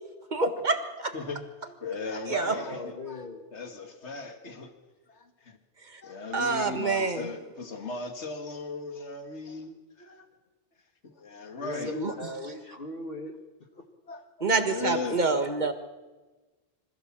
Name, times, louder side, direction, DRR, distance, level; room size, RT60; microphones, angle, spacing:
voice 1, 0.3-1.1 2.3-2.5 5.9-6.0 6.3-7.3 11.9-12.3 14.4-15.7, right 3 dB, 40° right, 7 dB, 1.8 m, -27 dB
voice 2, 1.1-4.7 5.1-5.6 6.0-10.3 11.0-12.2 14.1-15.4, left 3 dB, 75° left, 6 dB, 2.2 m, -38 dB
voice 3, 2.4-3.4 11.6-13.3 13.7-13.8, left 2 dB, 55° left, 3 dB, 1.8 m, -38 dB
26.5 x 15.0 x 7.4 m, 1.2 s
omnidirectional pair, 1.2 m